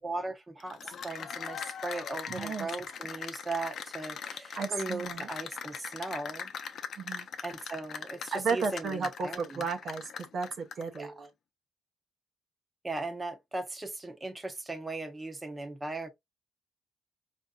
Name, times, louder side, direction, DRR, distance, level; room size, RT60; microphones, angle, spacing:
voice 1, 0.0-6.5 7.4-9.6 10.9-11.1 12.8-16.1, right 3 dB, 20° right, 0.8 m, -38 dB
Cheering / Applause, 0.6-11.0, left 7 dB, 65° left, 0.5 m, -40 dB
voice 2, 2.3-2.7 4.6-5.3 7.0-7.3 8.3-11.3, right 5 dB, 60° right, 0.8 m, -34 dB
4.4 x 2.6 x 2.3 m
cardioid pair, 90°, 0 cm